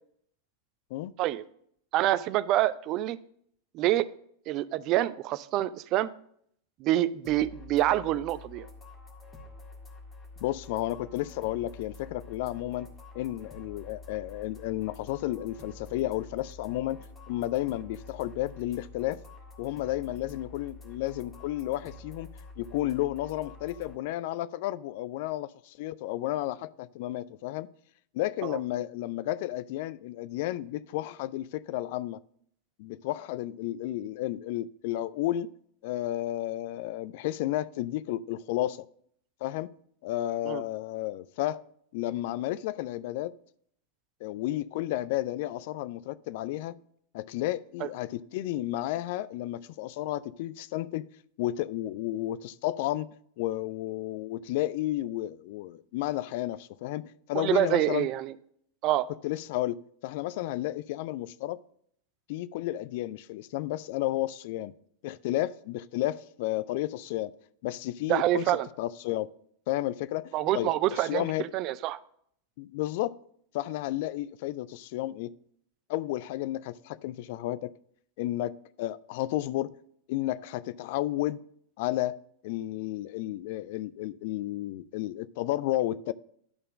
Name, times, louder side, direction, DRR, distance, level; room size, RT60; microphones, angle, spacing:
voice 1, 1.9-3.2 3.7-4.1 4.5-6.1 6.8-8.7 28.4-28.6 40.4-40.6 57.3-58.3 58.8-59.1 68.1-68.7 70.3-72.0, right 14 dB, 40° right, 0.4 m, -26 dB
sound 1, 7.2-23.9, left 3 dB, 20° left, 1.7 m, -48 dB
voice 2, 10.4-12.9 13.1-19.2 19.6-22.3 22.6-27.7 28.1-32.2 32.8-35.5 35.8-38.8 39.4-39.7 40.0-41.6 41.9-43.4 44.2-46.8 47.1-51.1 51.4-57.0 57.3-58.1 59.2-59.8 60.0-61.6 62.3-64.7 65.0-67.3 67.6-69.3 69.7-71.5 72.6-73.2 73.5-75.3 75.9-77.7 78.2-79.7 80.1-81.4 81.8-82.2 82.4-86.1, left 15 dB, 50° left, 0.3 m, -32 dB
11.0 x 4.4 x 5.1 m
figure-of-eight pair, 90°, 0 cm